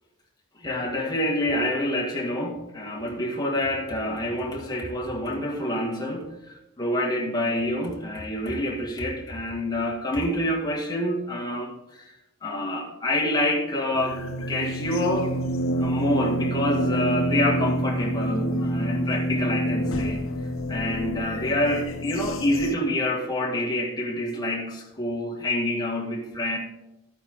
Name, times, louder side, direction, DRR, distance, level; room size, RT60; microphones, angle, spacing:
voice 1, 0.6-6.3 6.8-11.7 12.4-14.2 14.5-15.4 15.8-20.2 20.7-26.6, left 1 dB, 20° left, -1 dB, 1.9 m, -27 dB
sound 1, 13.9-22.7, right 1 dB, 80° left, 0.9 m, -27 dB
13.0 x 9.0 x 3.6 m, 0.94 s
head